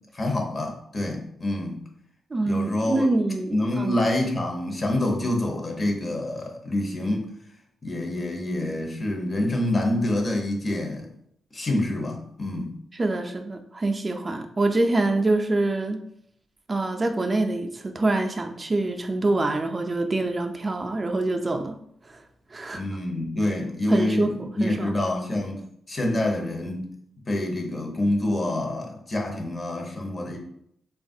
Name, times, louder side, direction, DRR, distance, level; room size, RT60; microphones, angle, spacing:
voice 1, 0.1-1.8 2.5-3.1 3.5-7.2 7.8-11.1 11.5-12.7 22.7-26.9 27.3-30.4, left 1 dB, 40° left, 2 dB, 0.8 m, -27 dB
voice 2, 2.3-4.0 12.9-16.0 16.7-21.7 22.1-22.2 22.5-22.8 23.9-24.9, right 2 dB, 35° right, 5 dB, 0.4 m, -25 dB
3.3 x 2.3 x 2.6 m, 0.70 s
supercardioid pair, 45°, 0 cm